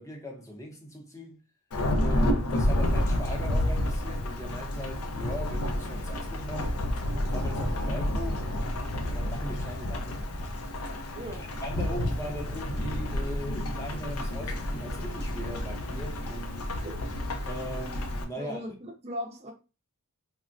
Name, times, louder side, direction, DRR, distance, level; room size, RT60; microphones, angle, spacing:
voice 1, 0.0-1.4 2.0-6.8 7.2-8.8 9.0-10.3 11.4-16.6 17.5-18.6, equal, 15° left, 0.7 m, -39 dB
Thunderstorm / Rain, 1.7-18.2, left 1 dB, 75° left, 0.6 m, -30 dB
voice 2, 11.2-11.5 16.7-16.9 18.4-19.5, equal, 30° right, 0.5 m, -38 dB
3.4 x 2.1 x 2.5 m
head